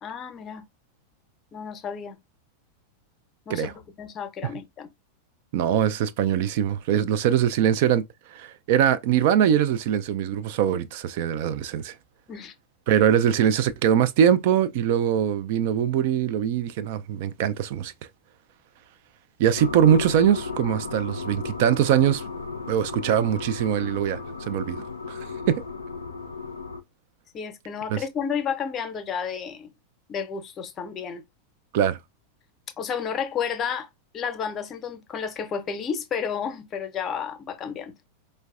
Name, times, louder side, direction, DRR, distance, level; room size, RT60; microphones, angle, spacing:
voice 1, 0.0-0.6 1.5-2.2 3.5-3.7 4.0-4.9 12.3-12.5 27.3-29.7 30.1-31.2 32.8-33.9 34.1-37.9, left 7 dB, 30° left, 0.6 m, -31 dB
voice 2, 5.5-8.0 8.3-11.9 12.9-17.9 19.4-22.2 22.7-25.6 27.9-28.0 31.7-32.0, right 9 dB, 50° right, 0.3 m, -22 dB
sound 1, 19.5-26.8, left 4 dB, 80° left, 0.4 m, -35 dB
4.5 x 2.1 x 2.4 m
figure-of-eight pair, 90°, 0 cm